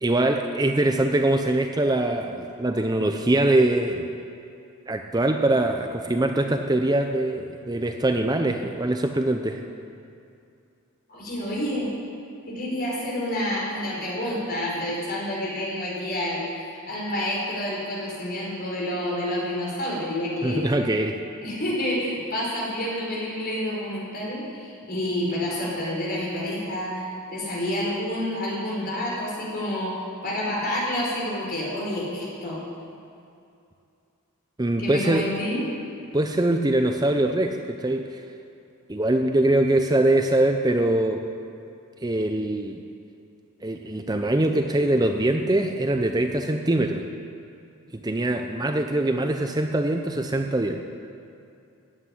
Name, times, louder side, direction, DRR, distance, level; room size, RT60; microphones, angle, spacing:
voice 1, 0.0-4.0 4.9-9.6 20.4-21.2 34.6-35.2 36.1-38.2 38.9-41.2 42.0-42.8 43.6-47.0 48.0-50.8, right 1 dB, 20° right, 5 dB, 0.6 m, -23 dB
voice 2, 11.1-11.9 12.5-20.6 21.4-27.0 27.3-32.6 34.8-35.6, left 1 dB, 45° left, -4 dB, 4.9 m, -29 dB
15.0 x 8.8 x 9.9 m, 2.6 s
head